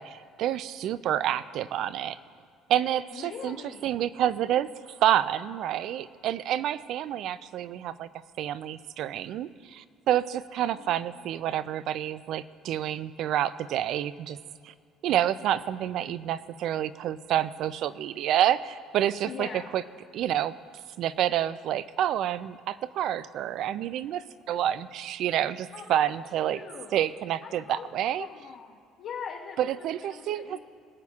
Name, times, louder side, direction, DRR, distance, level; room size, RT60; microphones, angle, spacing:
voice 1, 0.0-2.2 2.7-3.6 3.8-4.7 5.0-8.1 8.4-14.4 14.6-14.7 15.0-19.8 20.1-20.5 21.0-26.6 26.9-28.3 29.6-30.6, right 11 dB, 60° right, 16 dB, 0.4 m, -28 dB
voice 2, 3.1-4.0 10.7-11.0 19.2-19.7 25.7-26.0 26.4-27.0 27.4-27.9 28.2-30.6, left 6 dB, 55° left, -2 dB, 1.1 m, -41 dB
22.0 x 8.5 x 2.4 m, 2.2 s
cardioid pair, 130°, 0 cm